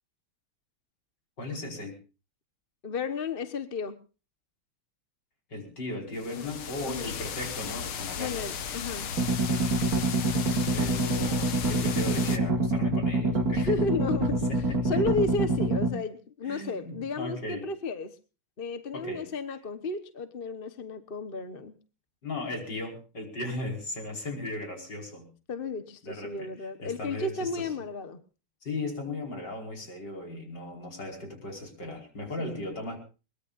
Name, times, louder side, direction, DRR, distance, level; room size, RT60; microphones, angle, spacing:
voice 1, 1.4-2.0 5.5-8.5 10.4-13.7 14.2-15.0 16.4-17.7 18.9-19.3 22.2-25.3 26.0-26.5 26.8-27.7 28.6-33.0, left 2 dB, 55° left, 2 dB, 5.9 m, -37 dB
voice 2, 2.8-4.0 6.3-6.5 6.8-7.1 8.2-9.1 13.5-18.2 18.6-21.8 25.5-28.2 32.4-32.6, left 3 dB, 35° left, 10 dB, 1.1 m, -33 dB
sound 1, 6.2-12.4, left 7 dB, 80° left, 2.2 m, -36 dB
sound 2, 9.2-15.9, right 2 dB, 45° right, 2.5 m, -26 dB
22.5 x 21.0 x 2.5 m, 0.33 s
omnidirectional pair, 2.3 m